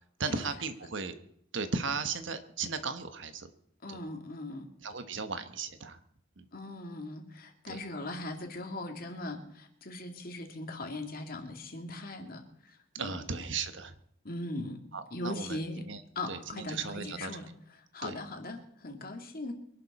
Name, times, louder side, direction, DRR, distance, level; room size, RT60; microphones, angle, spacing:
voice 1, 0.2-1.1 1.5-3.5 3.9-4.0 4.8-6.0 6.4-6.5 7.7-7.8 13.0-13.9 14.9-16.0 16.3-17.3 18.0-18.1, right 4 dB, 70° right, 9 dB, 1.3 m, -36 dB
voice 2, 3.8-4.7 6.5-13.2 14.2-14.8 15.1-15.9 16.2-17.5 17.9-19.5, left 2 dB, 50° left, 4 dB, 2.4 m, -39 dB
24.0 x 11.5 x 4.3 m, 0.68 s
head